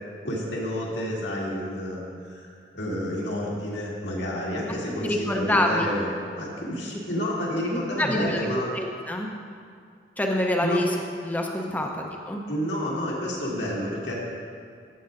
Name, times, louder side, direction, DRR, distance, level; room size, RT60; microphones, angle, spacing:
voice 1, 0.2-2.0 2.3-2.5 2.7-8.7 10.6-10.9 12.5-14.1, equal, 75° left, -4 dB, 1.9 m, -30 dB
voice 2, 5.0-5.9 8.0-9.3 10.2-10.9 11.2-11.9 12.3-12.4, left 1 dB, 10° left, 1 dB, 0.7 m, -25 dB
13.0 x 8.4 x 2.6 m, 2.2 s
head